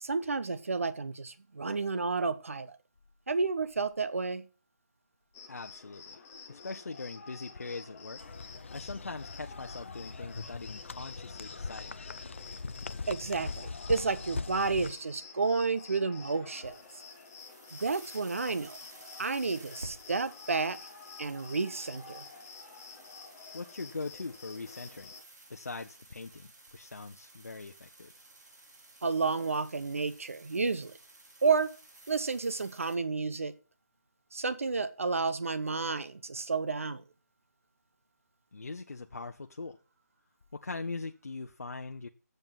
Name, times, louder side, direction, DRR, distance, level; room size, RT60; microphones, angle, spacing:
voice 1, 0.0-2.8 3.3-4.4 13.1-16.8 17.7-18.8 19.2-20.8 21.2-22.2 29.0-30.9 31.4-31.7 32.1-33.5 34.3-37.0, right 4 dB, 50° right, 1.0 m, -31 dB
Cricket, 5.3-25.2, left 5 dB, 5° left, 0.7 m, -50 dB
voice 2, 5.5-6.2 6.5-12.1 23.5-25.1 25.5-28.1 38.5-39.8 40.5-42.1, left 3 dB, 60° left, 0.8 m, -41 dB
sound 1, 8.2-14.9, left 4 dB, 45° left, 0.5 m, -41 dB
sound 2, 16.5-32.9, right 2 dB, 80° right, 4.1 m, -54 dB
7.9 x 7.2 x 7.3 m
figure-of-eight pair, 175°, 9 cm